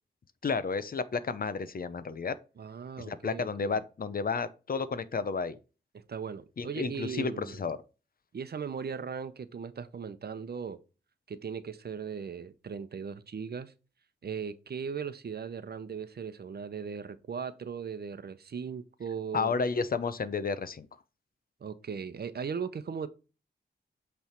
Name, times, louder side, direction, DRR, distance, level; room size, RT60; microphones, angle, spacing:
voice 1, 0.4-2.4 3.0-5.6 6.6-7.8 19.3-20.9, left 5 dB, 50° left, 0.7 m, -32 dB
voice 2, 2.6-3.8 6.1-7.7 8.3-10.8 11.3-13.7 14.2-19.6 21.6-23.1, right 6 dB, 60° right, 0.8 m, -38 dB
8.2 x 3.4 x 4.5 m
cardioid pair, 75°, 19 cm